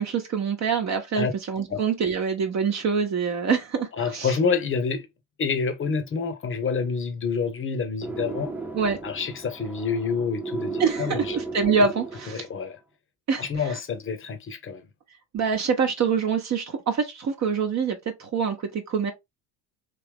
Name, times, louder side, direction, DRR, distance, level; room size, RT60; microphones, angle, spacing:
voice 1, 0.0-4.4 8.7-9.0 10.8-12.4 13.3-13.8 15.3-19.1, right 6 dB, 35° right, 1.0 m, -25 dB
voice 2, 4.0-5.1 5.4-8.5 9.0-11.4 11.6-11.7 12.3-12.8 13.4-14.8, left 5 dB, 25° left, 1.0 m, -27 dB
sound 1, 8.0-12.6, right 3 dB, 5° right, 0.4 m, -35 dB
3.4 x 2.9 x 3.4 m
hypercardioid pair, 70°, 45 cm